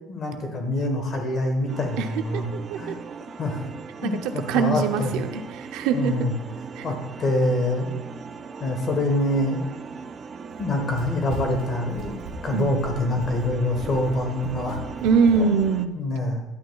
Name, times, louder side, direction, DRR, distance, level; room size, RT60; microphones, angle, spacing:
voice 1, 0.1-2.5 2.7-2.9 3.4-3.6 4.0-5.1 5.9-6.3 6.8-8.0 8.6-9.6 10.6-12.1 12.4-14.8 15.3-15.5 15.9-16.4, left 1 dB, 30° left, 4 dB, 1.3 m, -25 dB
sound 1, 1.7-15.9, right 5 dB, 25° right, 0.4 m, -39 dB
voice 2, 4.0-6.1 6.7-6.8 12.5-12.7 15.0-15.9, right 5 dB, 70° right, 7 dB, 0.6 m, -23 dB
Run, 10.5-15.7, right 3 dB, 90° right, 1.5 m, -38 dB
11.0 x 8.6 x 2.3 m, 0.99 s
cardioid pair, 180°, 0 cm